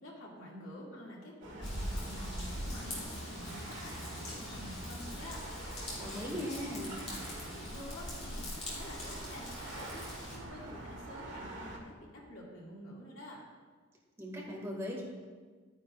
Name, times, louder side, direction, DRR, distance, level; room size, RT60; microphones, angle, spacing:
voice 1, 0.0-5.4 5.9-11.9 12.3-13.4, equal, 75° left, -4 dB, 2.3 m, -48 dB
sound 1, 1.4-11.8, right 1 dB, 65° right, 2.0 m, -45 dB
Raindrop / Vehicle horn car horn honking / Trickle dribble, 1.6-10.4, left 1 dB, 35° left, 2.8 m, -43 dB
voice 2, 6.0-7.0 14.2-15.0, equal, 15° right, -4 dB, 2.1 m, -39 dB
13.0 x 9.5 x 2.5 m, 1.5 s
head